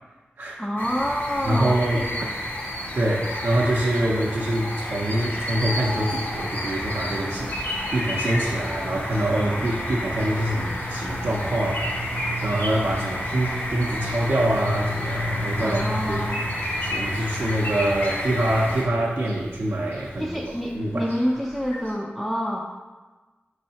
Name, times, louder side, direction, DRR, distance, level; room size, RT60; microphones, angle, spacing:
voice 1, 0.6-2.4 9.3-9.8 15.6-16.4 20.2-22.6, equal, 5° left, -2 dB, 0.4 m, -28 dB
sound 1, 0.8-18.8, left 1 dB, 45° left, 0.8 m, -30 dB
Bird, 1.3-20.4 20.7-20.8, left 3 dB, 90° left, 0.5 m, -43 dB
voice 2, 1.4-2.1 2.9-12.0 12.4-16.2 16.8-20.3 20.7-21.1, right 1 dB, 70° right, -4 dB, 0.5 m, -25 dB
sound 2, 7.5-21.9, left 1 dB, 65° left, 1.3 m, -36 dB
5.3 x 3.1 x 2.8 m, 1.3 s
wide cardioid pair, 60°, 4 cm